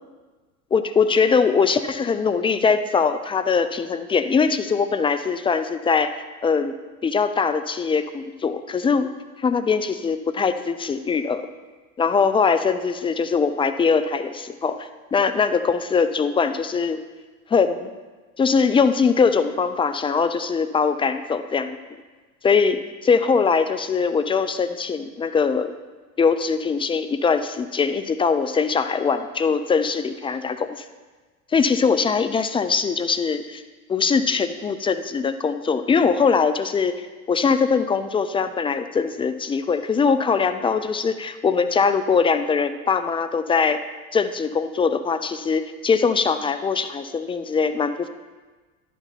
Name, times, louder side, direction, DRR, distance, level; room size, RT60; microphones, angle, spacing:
voice 1, 0.7-6.1 6.4-6.7 7.0-9.1 9.4-11.4 12.0-17.0 17.5-17.9 18.4-21.8 22.4-25.7 26.2-30.8 31.5-33.6 33.9-43.8 44.1-48.1, left 5 dB, 15° left, 10 dB, 0.3 m, -21 dB
11.0 x 6.1 x 5.7 m, 1.3 s
hypercardioid pair, 90°, 43 cm